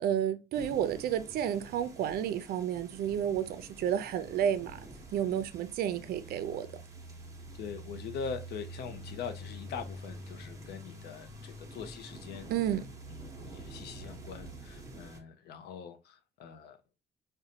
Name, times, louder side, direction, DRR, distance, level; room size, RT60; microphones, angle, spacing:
voice 1, 0.0-4.8 5.1-6.7 12.5-12.8, right 9 dB, 65° right, 0.5 m, -31 dB
sound 1, 0.5-15.2, right 1 dB, 20° right, 0.8 m, -47 dB
voice 2, 7.5-12.5 13.1-13.2 13.5-16.8, left 6 dB, 75° left, 0.5 m, -42 dB
5.0 x 2.2 x 2.7 m
cardioid pair, 170°, 17 cm